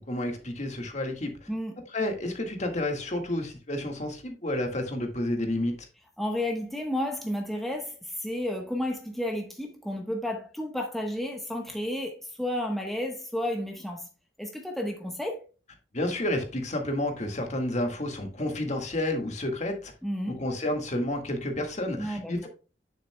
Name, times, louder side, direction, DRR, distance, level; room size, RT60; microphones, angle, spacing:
voice 1, 0.1-1.5 1.9-5.9 15.9-19.9 20.3-22.5, left 1 dB, 40° left, 1.7 m, -30 dB
voice 2, 1.5-1.8 6.2-14.1 14.4-15.4 20.0-20.4 22.0-22.3, left 1 dB, ahead, 1.1 m, -32 dB
9.4 x 7.3 x 2.2 m
head